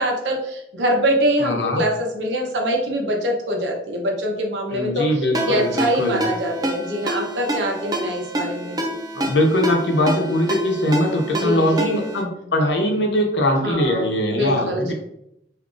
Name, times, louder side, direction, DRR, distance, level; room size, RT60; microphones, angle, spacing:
voice 1, 0.0-9.0 11.3-11.9 13.6-14.1 14.3-14.9, equal, 90° right, 1 dB, 0.8 m, -24 dB
voice 2, 1.4-1.8 4.7-6.2 9.1-14.9, left 1 dB, 85° left, 2 dB, 0.8 m, -21 dB
Ringtone, 5.3-12.2, right 1 dB, 20° right, 0.5 m, -27 dB
2.7 x 2.5 x 3.7 m, 0.79 s
head